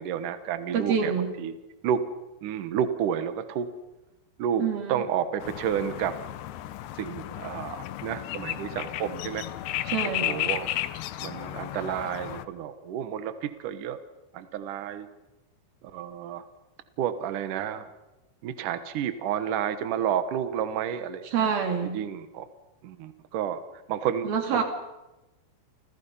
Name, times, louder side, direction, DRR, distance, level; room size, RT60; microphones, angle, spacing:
voice 1, 0.0-1.5 1.8-2.0 2.4-3.7 4.4-4.6 4.9-6.1 7.0-9.5 10.0-10.7 11.2-14.0 14.3-15.1 15.9-16.5 17.0-17.9 18.4-21.5 21.9-22.5 22.8-23.6 23.9-24.6, right 9 dB, 80° right, 10 dB, 1.8 m, -30 dB
voice 2, 0.7-1.3 4.6-5.0 9.9-10.4 21.3-22.0 24.2-24.6, right 7 dB, 50° right, 4 dB, 4.5 m, -27 dB
sound 1, 5.4-12.5, left 13 dB, 75° left, 2.5 m, -33 dB
29.5 x 28.0 x 5.6 m, 1.0 s
omnidirectional pair, 5.8 m